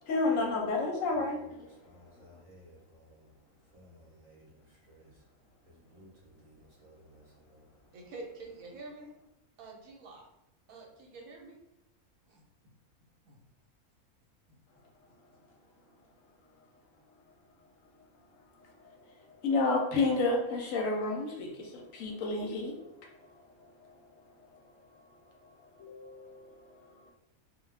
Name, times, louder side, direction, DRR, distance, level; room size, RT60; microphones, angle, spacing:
voice 1, 0.0-1.7 2.1-2.4 18.6-22.8 23.1-23.9 24.3-24.8 25.3-27.1, left 3 dB, 70° left, 0.9 m, -32 dB
voice 2, 1.1-1.5 1.8-3.3 3.7-5.2 5.6-7.7, equal, 35° right, 0.8 m, -58 dB
voice 3, 7.9-9.1 9.6-10.2 10.7-11.6 12.3-12.4 13.2-13.4 14.5-14.6, right 3 dB, 75° right, 1.1 m, -47 dB
2.4 x 2.3 x 3.2 m
omnidirectional pair, 1.5 m